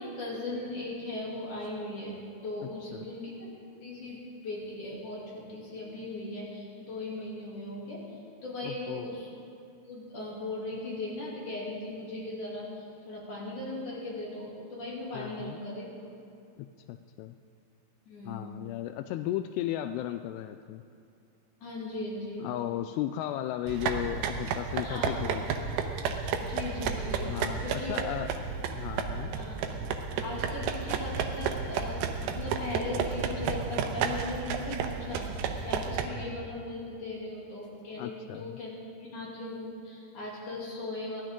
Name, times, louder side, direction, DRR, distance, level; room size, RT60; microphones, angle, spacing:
voice 1, 0.0-3.5 3.8-9.3 9.8-15.9 18.1-18.5 21.6-22.5 24.8-25.3 26.4-27.4 27.6-28.1 29.3-29.6 30.2-41.2, left 2 dB, 50° left, -6 dB, 4.1 m, -38 dB
voice 2, 8.6-9.1 15.1-15.6 16.6-17.4 18.3-20.8 22.4-25.4 27.2-28.3 28.7-29.3 38.0-38.6, left 13 dB, 85° left, 8 dB, 2.6 m, -35 dB
sound 1, 23.7-36.1, right 6 dB, 75° right, 2.6 m, -32 dB
23.5 x 15.5 x 3.8 m, 2.5 s
omnidirectional pair, 4.7 m